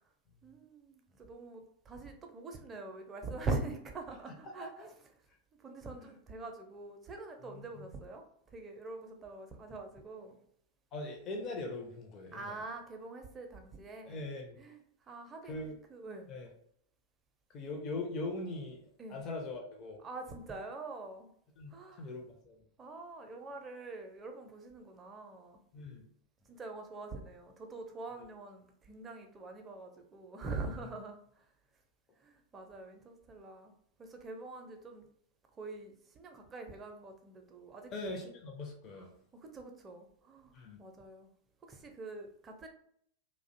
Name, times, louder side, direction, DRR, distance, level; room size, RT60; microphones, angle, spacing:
voice 1, 0.4-4.9 5.6-8.2 8.5-10.4 12.3-14.3 14.6-15.6 15.9-16.3 19.0-19.2 20.0-21.3 21.7-22.1 22.8-25.6 26.5-31.5 32.2-33.7 34.0-35.1 35.5-38.3 39.3-41.3 41.6-42.7, right 3 dB, 20° right, 4 dB, 0.4 m, -44 dB
voice 2, 7.5-7.9 10.9-12.6 14.1-14.6 15.4-15.8 16.3-16.5 17.5-20.0 21.6-22.6 25.7-26.0 37.9-39.1 40.5-40.8, left 2 dB, 30° left, 1 dB, 0.5 m, -41 dB
2.4 x 2.0 x 2.6 m, 0.65 s
figure-of-eight pair, 90°, 0 cm